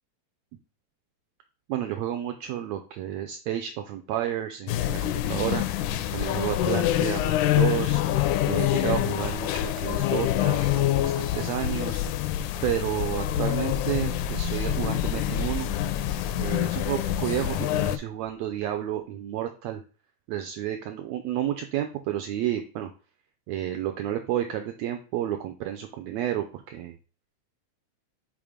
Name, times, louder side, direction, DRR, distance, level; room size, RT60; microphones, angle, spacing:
voice 1, 1.7-5.7 6.1-8.0 8.5-12.0 12.6-15.7 16.4-19.8 20.3-22.9 23.5-27.0, right 11 dB, 80° right, 6 dB, 1.7 m, -31 dB
sound 1, 4.7-18.0, left 13 dB, 85° left, 2.0 m, -26 dB
sound 2, 13.1-18.0 18.2-18.3, left 2 dB, 60° left, 0.7 m, -36 dB
5.1 x 3.7 x 4.9 m, 0.37 s
omnidirectional pair, 3.4 m